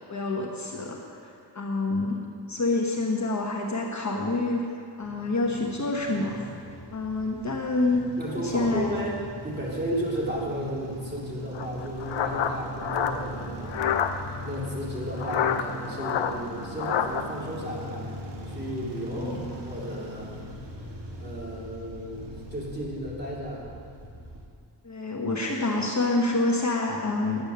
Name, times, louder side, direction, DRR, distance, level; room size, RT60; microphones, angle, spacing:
voice 1, 0.1-2.2 2.5-6.4 6.9-8.9 19.1-19.5 24.8-27.4, left 2 dB, 40° left, -1 dB, 1.2 m, -27 dB
sound 1, 5.0-24.5, equal, 65° right, 1.7 m, -40 dB
voice 2, 8.2-13.8 14.4-20.3 21.2-23.6, equal, 20° right, -5 dB, 2.7 m, -34 dB
sound 2, 11.5-14.1 15.2-17.2, left 8 dB, 85° left, 0.7 m, -27 dB
10.5 x 8.0 x 6.8 m, 2.3 s
wide cardioid pair, 120°, 44 cm